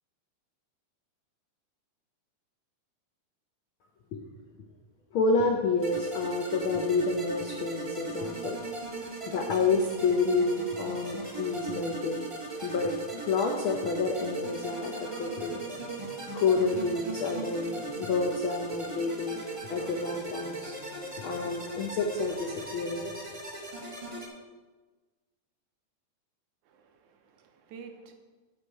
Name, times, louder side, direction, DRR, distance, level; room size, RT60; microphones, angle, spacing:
voice 1, 5.1-8.6 9.3-12.3 12.6-15.6 16.3-19.4 19.7-20.8 21.2-23.1, left 4 dB, 90° left, 2 dB, 1.1 m, -29 dB
sound 1, 5.8-24.3, right 3 dB, 40° right, 0.4 m, -38 dB
Singing, 14.1-22.7, equal, 60° left, 4.4 m, -52 dB
voice 2, 26.6-28.1, right 5 dB, 75° right, 5 dB, 2.2 m, -49 dB
9.7 x 7.2 x 4.7 m, 1.3 s
omnidirectional pair, 3.4 m